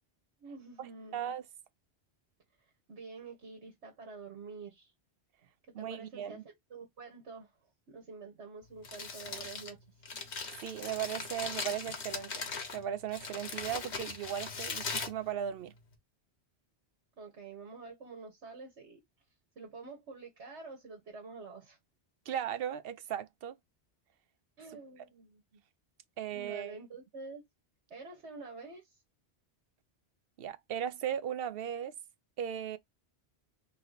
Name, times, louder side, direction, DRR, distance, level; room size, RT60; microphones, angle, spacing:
voice 1, 0.4-1.3 2.6-4.9 5.8-9.8 17.2-19.0 19.5-21.8 24.6-25.6 26.3-27.4 27.9-29.0, right 4 dB, 85° right, 1.6 m, -48 dB
voice 2, 1.1-1.4 5.7-6.4 10.6-12.5 12.7-15.7 22.3-23.6 26.2-26.8 30.4-31.9 32.4-32.8, right 9 dB, 65° right, 0.8 m, -37 dB
Crumpling crinkling, 8.6-15.9, left 4 dB, 80° left, 1.5 m, -40 dB
3.9 x 2.8 x 3.9 m
omnidirectional pair, 1.1 m